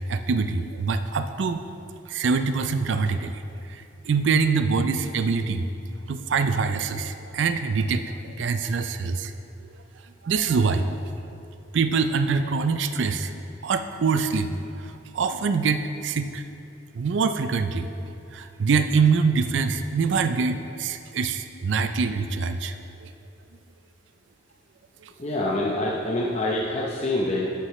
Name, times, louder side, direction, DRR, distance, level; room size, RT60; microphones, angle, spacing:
voice 1, 0.1-1.6 2.1-3.4 3.7-5.7 6.1-9.3 10.2-10.9 11.7-13.3 13.6-14.5 14.8-16.4 16.9-17.9 18.3-22.7 23.0-23.1 25.0-25.1, right 5 dB, 70° right, 10 dB, 0.4 m, -24 dB
voice 2, 25.2-27.5, left 1 dB, 35° left, -3 dB, 0.7 m, -26 dB
11.5 x 8.1 x 3.1 m, 2.6 s
head